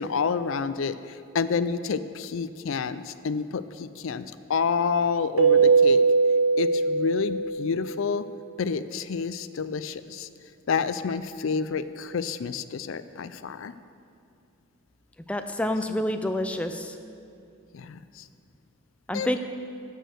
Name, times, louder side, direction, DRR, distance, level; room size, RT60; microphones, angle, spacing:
voice 1, 0.0-6.0 6.6-8.2 8.6-10.3 10.7-13.7 17.7-18.2 19.1-19.4, left 5 dB, 70° left, 13 dB, 0.4 m, -29 dB
Keyboard (musical), 5.4-7.9, right 4 dB, 90° right, 1.2 m, -20 dB
voice 2, 15.3-17.0 19.1-19.4, left 1 dB, 5° left, 7 dB, 0.4 m, -28 dB
16.0 x 6.3 x 6.4 m, 2.5 s
head